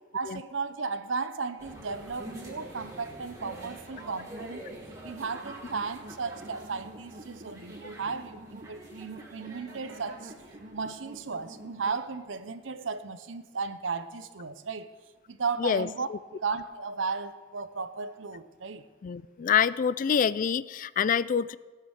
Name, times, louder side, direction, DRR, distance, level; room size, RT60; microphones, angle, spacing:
voice 1, 0.1-4.7 5.0-10.3 10.7-14.9 15.3-18.9, right 4 dB, 85° right, 0.8 m, -35 dB
sound 1, 1.6-12.0 12.4-12.5, right 1 dB, 20° right, 2.6 m, -47 dB
sound 2, 3.4-12.1, right 1 dB, 40° right, 1.1 m, -48 dB
voice 2, 19.0-21.6, left 7 dB, 45° left, 0.3 m, -26 dB
18.0 x 6.8 x 6.4 m
head